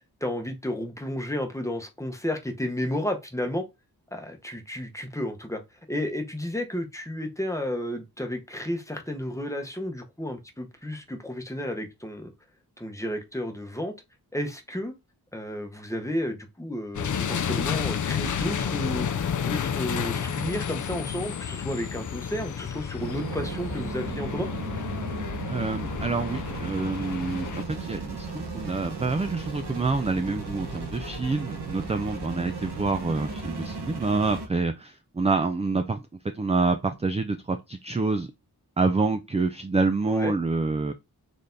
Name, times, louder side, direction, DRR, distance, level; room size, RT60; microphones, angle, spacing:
voice 1, 0.2-3.6 4.1-5.6 5.9-12.3 12.8-13.9 14.3-14.9 15.3-24.5 40.1-40.3, left 1 dB, 10° left, 0.8 m, -32 dB
sound 1, 16.9-27.6, left 7 dB, 55° left, 0.4 m, -31 dB
sound 2, 23.0-34.5, right 3 dB, 90° right, 1.1 m, -35 dB
voice 2, 25.5-36.0 36.3-38.3 38.8-40.9, right 3 dB, 20° right, 0.3 m, -27 dB
4.0 x 3.3 x 2.6 m
wide cardioid pair, 75°, 38 cm